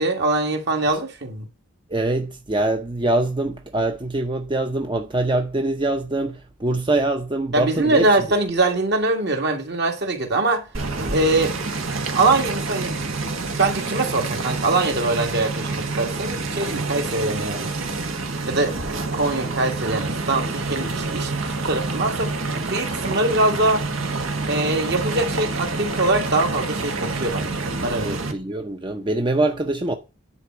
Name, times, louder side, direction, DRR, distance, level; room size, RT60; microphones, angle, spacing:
voice 1, 0.0-1.5 7.5-10.7 11.1-11.5 12.0-13.0 13.6-17.7 18.5-18.7 19.1-21.3 21.7-22.3 22.7-23.8 24.5-28.2, right 2 dB, 55° right, 1.7 m, -23 dB
voice 2, 1.9-8.4 28.0-29.9, right 2 dB, 25° right, 0.7 m, -24 dB
sound 1, 10.7-28.3, right 3 dB, 85° right, 1.5 m, -27 dB
9.8 x 4.2 x 6.0 m
head